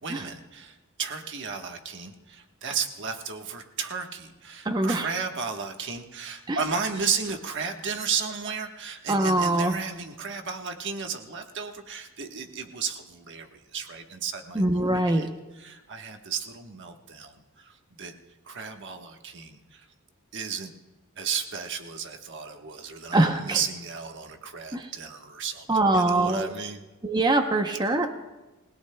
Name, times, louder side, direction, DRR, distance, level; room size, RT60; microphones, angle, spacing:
voice 1, 0.0-15.3 15.5-18.1 18.4-19.9 20.3-20.7 21.2-26.8, right 6 dB, 55° right, 5 dB, 1.3 m, -34 dB
voice 2, 4.6-5.1 6.5-6.6 9.1-9.8 14.5-15.3 23.1-23.6 24.7-24.9 25.7-26.5 27.0-28.1, right 2 dB, 20° right, 5 dB, 0.8 m, -23 dB
28.5 x 17.5 x 2.3 m, 1.1 s
head